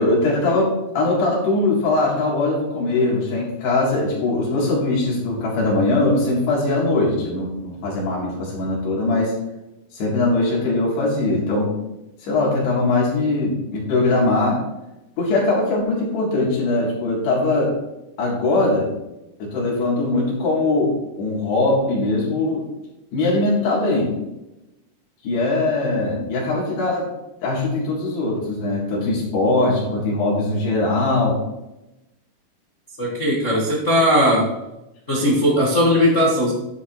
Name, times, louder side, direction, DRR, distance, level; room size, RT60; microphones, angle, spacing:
voice 1, 0.0-9.3 9.9-11.8 12.2-14.6 15.2-17.8 18.2-18.9 19.4-22.7 23.1-24.1 25.2-27.1 27.4-31.4, left 2 dB, 85° left, -4 dB, 5.4 m, -21 dB
voice 2, 33.0-34.5 35.1-36.5, equal, 60° left, -4 dB, 0.7 m, -18 dB
11.0 x 10.5 x 3.2 m, 0.95 s
omnidirectional pair, 4.6 m